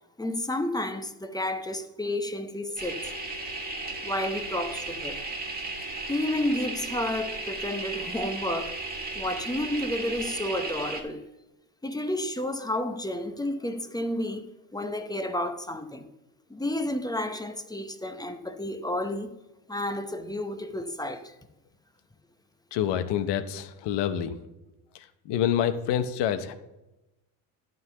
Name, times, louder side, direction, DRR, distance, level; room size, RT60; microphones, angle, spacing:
voice 1, 0.2-3.1 4.0-5.2 6.0-8.8 9.2-11.2 11.8-16.1 16.5-19.4 19.7-21.3, left 1 dB, 10° left, 0.7 m, -31 dB
sound 1, 2.8-11.0, right 3 dB, 20° right, 1.6 m, -35 dB
voice 2, 22.7-24.4 24.9-26.5, left 9 dB, 65° left, 0.9 m, -27 dB
11.0 x 3.9 x 6.9 m
supercardioid pair, 90°, 44 cm